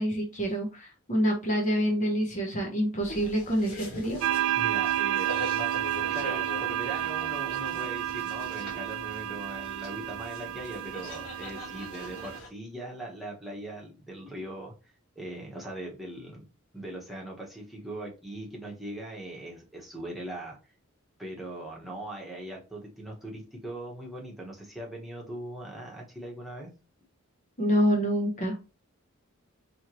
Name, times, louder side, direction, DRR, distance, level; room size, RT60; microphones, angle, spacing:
voice 1, 0.0-4.2 27.6-28.6, equal, 35° left, 1 dB, 0.8 m, -27 dB
sound 1, 3.0-12.5, left 1 dB, 90° left, 1.4 m, -42 dB
sound 2, 4.2-12.4, right 12 dB, 65° right, 0.3 m, -31 dB
voice 2, 4.6-5.3 6.1-14.7 15.1-16.4 16.7-20.6 21.2-26.7, right 1 dB, ahead, -3 dB, 1.1 m, -40 dB
4.4 x 2.9 x 3.0 m, 0.31 s
head